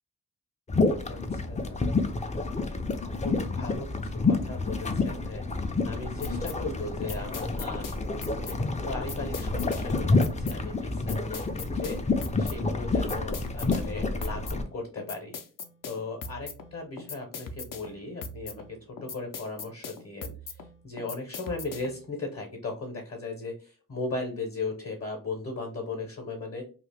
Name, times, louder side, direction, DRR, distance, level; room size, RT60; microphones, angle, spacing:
sound 1, 0.7-14.6, left 3 dB, 20° left, 0.3 m, -29 dB
voice 1, 1.1-1.9 3.2-5.4 5.8-7.9 8.3-8.6 8.8-15.3 15.8-26.6, left 3 dB, 45° left, 1 dB, 0.8 m, -37 dB
sound 2, 6.2-22.1, left 3 dB, 70° left, 0.6 m, -41 dB
2.9 x 2.4 x 3.3 m, 0.37 s
wide cardioid pair, 140°, 34 cm